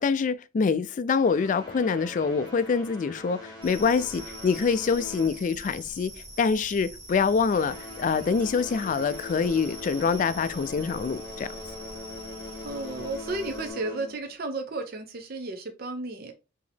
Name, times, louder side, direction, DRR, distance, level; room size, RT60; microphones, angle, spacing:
voice 1, 0.0-6.1 6.4-11.5, left 5 dB, 40° left, 0.3 m, -25 dB
sound 1, 1.2-6.1 6.4-6.7 7.3-14.3, left 2 dB, 20° left, 1.8 m, -42 dB
sound 2, 3.6-13.7, right 1 dB, 10° right, 2.5 m, -44 dB
voice 2, 12.6-16.3, right 2 dB, 50° right, 0.6 m, -33 dB
4.9 x 2.8 x 3.4 m
head